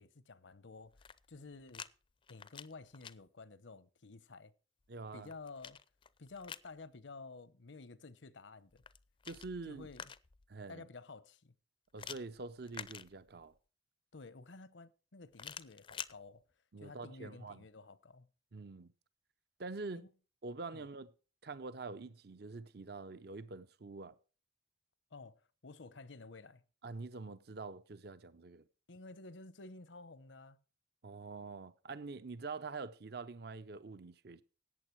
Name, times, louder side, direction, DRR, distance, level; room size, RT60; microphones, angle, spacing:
voice 1, 0.0-1.9 2.3-4.5 5.1-5.8 6.2-8.8 9.7-10.1 10.7-11.5 14.1-16.4 16.8-18.3 19.9-20.1 20.7-20.9 25.1-26.6 28.9-30.6, left 3 dB, 80° left, 0.9 m, -52 dB
sound 1, 0.8-1.9 2.2-3.1 4.9-6.7 8.7-10.5 12.0-13.6 15.3-16.1, left 7 dB, 25° left, 0.4 m, -49 dB
voice 2, 4.9-5.3 9.3-9.9 10.5-10.9 11.9-13.5 16.7-17.6 18.5-18.9 19.6-20.0 20.4-21.1 21.4-24.1 26.8-28.6 31.0-34.4, right 3 dB, 60° right, 0.6 m, -45 dB
14.0 x 8.9 x 4.6 m
head